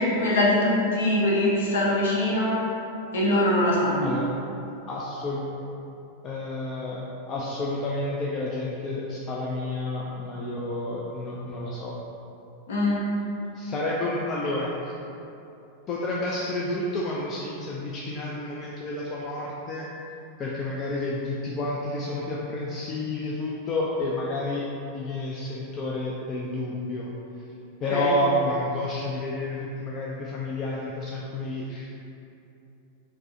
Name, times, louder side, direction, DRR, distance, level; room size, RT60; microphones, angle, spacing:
voice 1, 0.0-2.6 3.1-4.1 12.7-13.0 27.9-28.1, left 1 dB, 60° left, -5 dB, 0.7 m, -23 dB
voice 2, 4.0-4.3 4.9-5.4 6.2-12.0 13.5-15.0 15.9-19.9 20.4-24.7 24.9-27.1 27.8-32.1, left 1 dB, 30° left, -4 dB, 0.3 m, -30 dB
4.3 x 2.0 x 2.7 m, 2.7 s
figure-of-eight pair, 90°, 0 cm